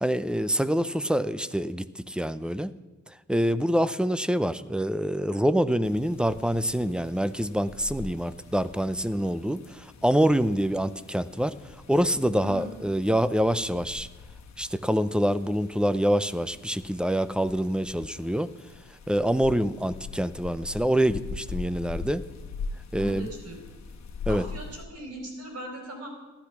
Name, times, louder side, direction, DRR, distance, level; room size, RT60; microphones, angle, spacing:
voice 1, 0.0-2.7 3.3-11.5 11.9-14.1 14.6-18.5 19.1-22.2 22.9-23.3 24.3-24.4, equal, 5° right, 14 dB, 0.5 m, -26 dB
sound 1, 5.8-24.9, left 4 dB, 65° left, 1.3 m, -42 dB
voice 2, 23.0-23.5 24.3-26.1, right 1 dB, 55° right, 2 dB, 4.7 m, -39 dB
15.0 x 12.0 x 6.0 m, 1.3 s
wide cardioid pair, 135°, 30 cm